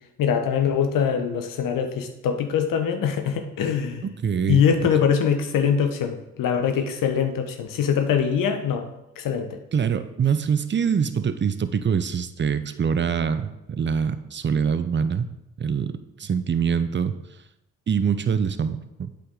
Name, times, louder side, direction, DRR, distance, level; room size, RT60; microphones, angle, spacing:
voice 1, 0.2-4.0 4.5-8.8 9.2-9.6, left 7 dB, 60° left, 6 dB, 1.1 m, -23 dB
voice 2, 4.0-4.9 9.7-15.3 15.6-17.1 17.9-19.1, right 7 dB, 30° right, 12 dB, 0.7 m, -24 dB
8.4 x 5.0 x 3.9 m, 0.90 s
hypercardioid pair, 45°, 36 cm